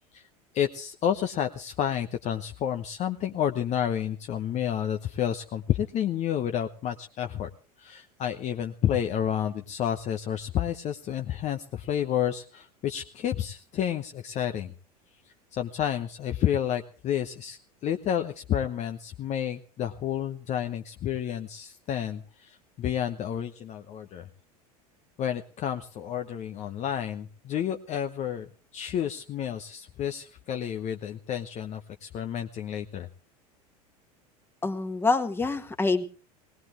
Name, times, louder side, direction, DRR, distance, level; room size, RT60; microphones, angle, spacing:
voice 1, 0.5-7.5 7.8-14.7 15.5-24.3 25.2-33.1, left 10 dB, 35° left, 7 dB, 1.0 m, -30 dB
voice 2, 34.6-36.0, left 3 dB, 10° left, 7 dB, 1.6 m, -26 dB
19.0 x 19.0 x 3.2 m, 0.35 s
figure-of-eight pair, 80°, 20 cm